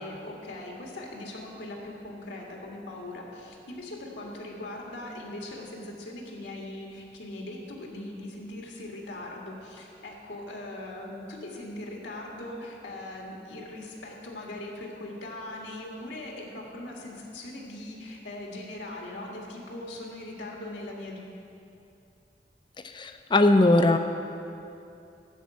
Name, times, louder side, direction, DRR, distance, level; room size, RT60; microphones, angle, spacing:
voice 1, 0.0-21.3, left 1 dB, 80° left, -1 dB, 1.8 m, -40 dB
voice 2, 22.8-24.0, left 2 dB, 25° left, 8 dB, 0.5 m, -20 dB
12.5 x 4.6 x 8.3 m, 2.7 s
head